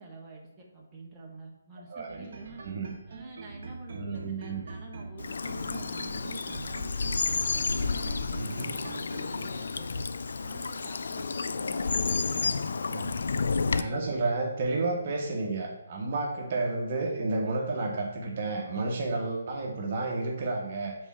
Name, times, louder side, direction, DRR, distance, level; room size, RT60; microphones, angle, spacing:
voice 1, 0.0-2.6 3.1-7.2 7.5-10.0 10.4-12.7, right 3 dB, 10° right, -5 dB, 1.4 m, -48 dB
voice 2, 1.9-2.3 2.6-2.9 3.9-4.6 8.4-8.7 12.9-13.1 13.7-20.9, right 3 dB, 40° right, 0 dB, 1.3 m, -31 dB
sound 1, 2.1-9.5, right 4 dB, 60° right, 0.9 m, -44 dB
Bird vocalization bird call bird song / Stream, 5.2-13.8, left 4 dB, 70° left, 0.4 m, -31 dB
7.0 x 4.2 x 5.6 m, 1.0 s
hypercardioid pair, 160°, 0 cm